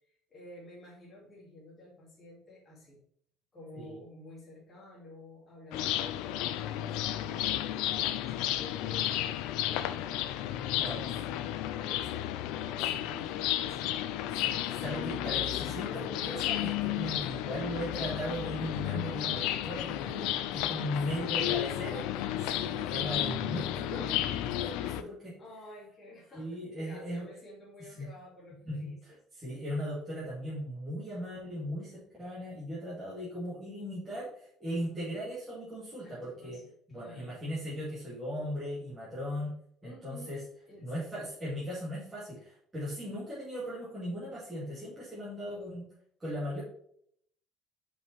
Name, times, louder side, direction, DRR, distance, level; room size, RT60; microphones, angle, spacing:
voice 1, 0.0-3.0 3.5-10.3 10.9-14.2 17.0-17.6 21.2-22.0 25.4-29.0 36.0-36.6 36.9-37.4 39.8-40.4 40.7-41.1 43.0-43.3, left 1 dB, 15° left, -6 dB, 2.5 m, -51 dB
sound 1, 5.7-25.0, left 13 dB, 85° left, 0.5 m, -33 dB
voice 2, 12.9-13.4 14.4-22.0 22.4-25.3 26.3-27.2 28.0-28.1 28.7-36.6 36.9-39.6 39.8-40.4 40.8-45.8 46.2-46.6, equal, 15° right, -9 dB, 2.3 m, -38 dB
5.7 x 5.4 x 4.5 m, 0.66 s
cardioid pair, 175°, 0 cm